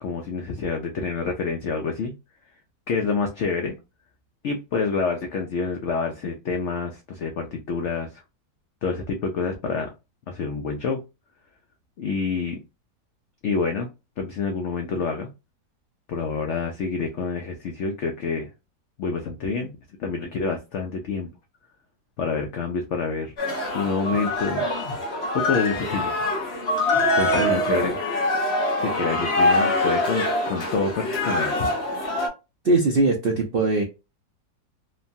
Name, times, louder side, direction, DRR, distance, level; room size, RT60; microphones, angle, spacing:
voice 1, 0.0-2.1 2.9-3.8 4.4-8.2 8.8-9.9 10.3-11.0 12.0-12.6 13.4-13.9 14.2-15.3 16.1-18.5 19.0-19.7 20.0-21.3 22.2-23.3 23.7-24.7 25.3-26.1 27.2-27.9 28.3-28.5 28.8-31.7, left 4 dB, 85° left, 3 dB, 0.6 m, -27 dB
sound 1, 23.4-32.3, left 1 dB, 45° left, 1.1 m, -24 dB
voice 2, 27.4-27.9 32.6-33.8, right 3 dB, 85° right, 1 dB, 0.5 m, -22 dB
3.1 x 2.2 x 2.6 m, 0.26 s
omnidirectional pair, 1.8 m